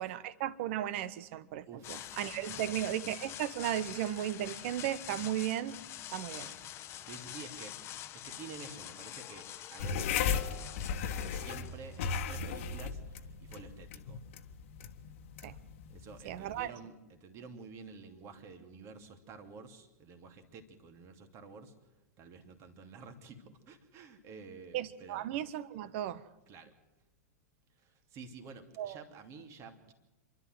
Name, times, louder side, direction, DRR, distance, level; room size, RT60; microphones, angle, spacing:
voice 1, 0.0-5.8 6.1-6.5 15.4-15.5 16.2-16.7 24.7-26.2 28.8-29.0, right 12 dB, 50° right, 16 dB, 1.2 m, -35 dB
voice 2, 1.7-2.9 6.4-6.6 7.0-14.2 15.9-21.7 22.2-25.3 26.5-26.7 27.8-29.9, right 4 dB, 35° right, 6 dB, 2.8 m, -51 dB
sound 1, 1.8-12.5, left 12 dB, 30° left, 1.2 m, -46 dB
sound 2, 9.8-16.7, left 6 dB, 55° left, 1.5 m, -36 dB
28.0 x 12.5 x 7.9 m, 1.1 s
figure-of-eight pair, 100°, 9 cm